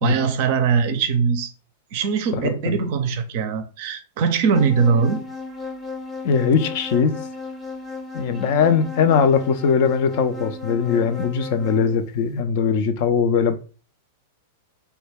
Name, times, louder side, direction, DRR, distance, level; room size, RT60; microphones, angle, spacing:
voice 1, 0.0-1.5 1.9-5.2, right 6 dB, 55° right, 0.4 m, -21 dB
voice 2, 2.3-2.8 6.2-7.1 8.1-13.6, left 6 dB, 55° left, 0.3 m, -20 dB
sound 1, 4.5-12.0, left 3 dB, 10° right, 0.6 m, -35 dB
2.2 x 2.2 x 3.3 m
hypercardioid pair, 100°, 0 cm